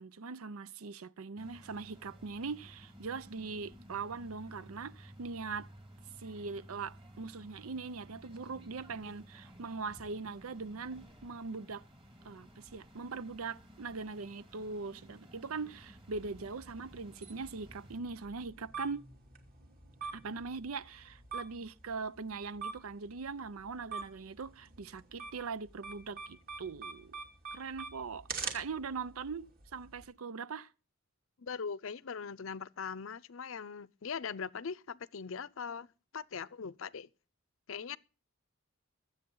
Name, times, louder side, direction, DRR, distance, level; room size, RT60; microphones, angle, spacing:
voice 1, 0.0-5.7 6.2-11.8 12.2-19.1 20.0-27.1 27.5-30.7, right 4 dB, 85° right, 0.6 m, -41 dB
sound 1, 1.4-18.0, equal, 25° right, 2.2 m, -55 dB
sound 2, 16.1-30.0, right 5 dB, 45° right, 2.8 m, -46 dB
voice 2, 31.4-35.9 36.1-37.1 37.7-38.0, left 6 dB, 65° left, 0.6 m, -40 dB
22.5 x 8.0 x 3.9 m
head